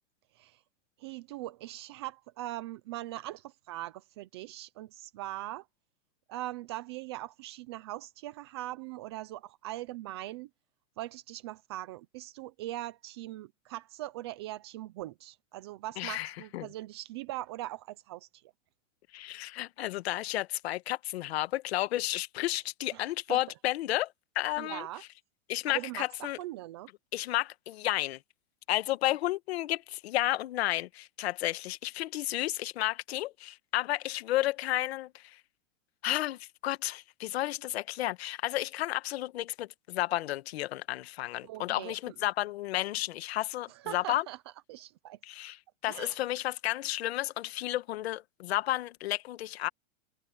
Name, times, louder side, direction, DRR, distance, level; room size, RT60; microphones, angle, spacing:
voice 1, 1.0-5.7 6.3-10.5 11.0-18.5 22.9-23.4 24.6-25.0 25.7-26.9 41.4-42.1 43.7-44.4 44.7-45.2 45.9-46.2, right 16 dB, 20° right, 0.5 m, -41 dB
voice 2, 16.0-16.7 19.1-24.9 25.5-26.4 27.1-28.2 28.7-35.4 36.0-44.2 45.2-49.7, left 15 dB, 55° left, 1.5 m, -32 dB
supercardioid pair, 170°, 38 cm